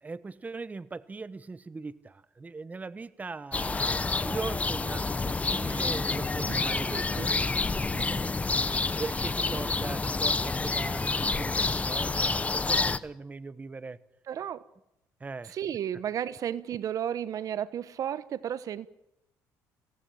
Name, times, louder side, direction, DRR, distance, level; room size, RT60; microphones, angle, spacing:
voice 1, 0.0-7.5 7.7-8.3 9.0-14.0 15.2-15.5, right 4 dB, 20° right, 1.1 m, -40 dB
sound 1, 3.5-13.0, left 3 dB, 20° left, 1.0 m, -28 dB
voice 2, 6.9-7.3 7.9-8.1 8.9-9.0 14.3-14.6 15.4-18.9, right 9 dB, 55° right, 1.0 m, -33 dB
24.0 x 18.0 x 8.8 m
cardioid pair, 90°, 7 cm